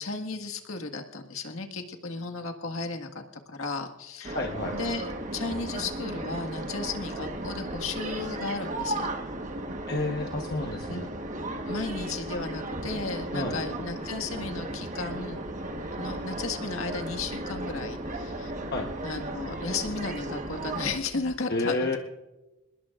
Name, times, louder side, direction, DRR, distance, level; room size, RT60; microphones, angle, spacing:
voice 1, 0.0-4.4 4.7-9.1 10.9-11.0 11.7-15.4 15.9-18.5 19.0-21.9, left 3 dB, 85° left, 5 dB, 1.8 m, -34 dB
sound 1, 4.2-21.0, right 1 dB, 35° right, 1.4 m, -35 dB
voice 2, 4.3-4.8 9.9-11.1 13.3-13.6 18.7-18.9 21.5-22.0, left 2 dB, 50° left, 2 dB, 1.2 m, -30 dB
sound 2, 14.1-21.3, equal, 25° left, 7.7 m, -51 dB
27.0 x 21.0 x 2.5 m, 1.0 s
head